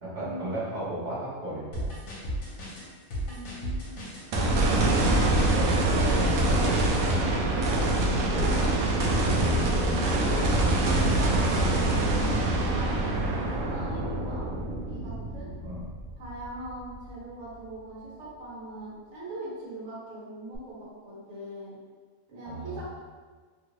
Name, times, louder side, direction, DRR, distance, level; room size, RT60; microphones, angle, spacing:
voice 1, 0.0-2.0 11.8-12.1 15.6-15.8 22.4-22.8, right 1 dB, 35° right, -12 dB, 1.1 m, -35 dB
sound 1, 1.7-7.0, equal, 75° left, 1.2 m, -34 dB
voice 2, 3.2-4.1 4.8-6.7 7.4-11.0 11.7-15.5 16.2-21.7 22.3-22.8, right 1 dB, 60° right, -7 dB, 1.3 m, -41 dB
sound 2, 4.3-16.6 17.1-17.2 20.5-20.6, right 1 dB, 75° right, 0.9 m, -25 dB
2.9 x 2.5 x 3.0 m, 1.5 s
omnidirectional pair, 1.5 m